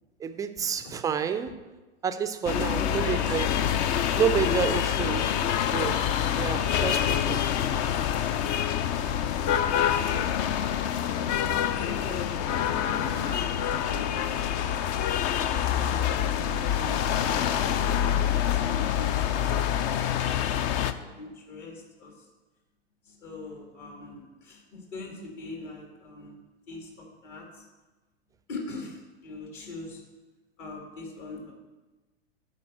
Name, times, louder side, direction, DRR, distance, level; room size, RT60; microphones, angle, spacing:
voice 1, 0.2-1.6 2.0-3.5 4.1-5.3 5.7-6.1 6.4-7.4 12.5-12.6, right 7 dB, 10° right, 9 dB, 0.4 m, -29 dB
sound 1, 2.4-20.9, left 9 dB, 35° left, 0.6 m, -26 dB
voice 2, 2.7-3.4 4.9-5.3 9.7-10.3 11.7-14.3 15.4-19.2 19.9-20.5 20.7-22.3 23.1-26.4 26.7-27.6 28.5-30.0 30.6-31.5, left 3 dB, 55° left, 1 dB, 2.3 m, -41 dB
10.5 x 4.2 x 7.7 m, 1.2 s
hypercardioid pair, 100°, 31 cm